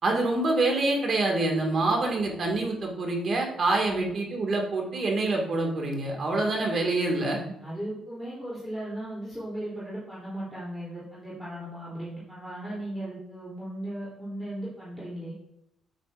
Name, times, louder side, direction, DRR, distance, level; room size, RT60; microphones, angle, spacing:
voice 1, 0.0-7.4, right 2 dB, 50° right, 0 dB, 1.9 m, -26 dB
voice 2, 7.6-15.3, right 1 dB, 10° right, -8 dB, 3.0 m, -37 dB
8.5 x 8.1 x 2.5 m, 0.82 s
cardioid pair, 90°, 0 cm